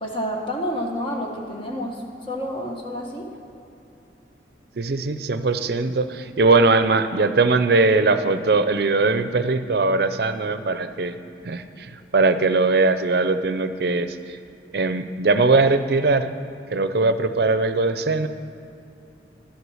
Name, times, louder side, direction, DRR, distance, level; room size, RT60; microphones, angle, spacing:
voice 1, 0.0-3.3, equal, 30° left, 0 dB, 1.4 m, -29 dB
voice 2, 4.8-11.2 11.4-14.4 14.7-16.3 16.7-18.3, right 3 dB, 60° right, 10 dB, 0.5 m, -20 dB
11.5 x 8.2 x 6.3 m, 2.8 s
head